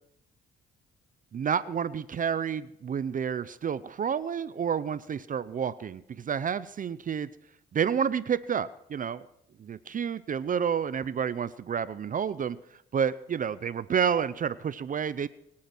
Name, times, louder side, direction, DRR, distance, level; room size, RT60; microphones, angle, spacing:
voice 1, 1.3-7.3 7.7-9.3 9.6-12.6 12.9-15.3, right 7 dB, 45° right, 16 dB, 0.6 m, -29 dB
25.0 x 8.7 x 6.1 m, 0.79 s
cardioid pair, 90°, 20 cm